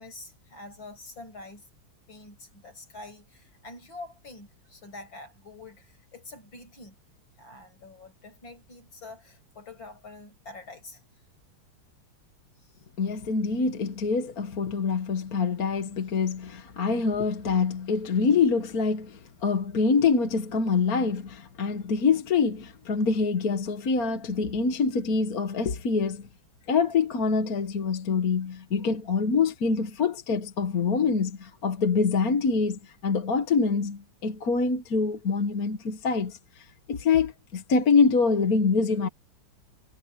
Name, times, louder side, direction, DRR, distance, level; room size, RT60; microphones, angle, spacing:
voice 1, 0.0-1.7 2.1-7.0 7.4-11.0 12.6-12.8, left 2 dB, 65° left, 7.5 m, -46 dB
voice 2, 13.0-26.3 26.7-39.1, left 5 dB, 45° left, 1.7 m, -25 dB
omnidirectional pair, 2.3 m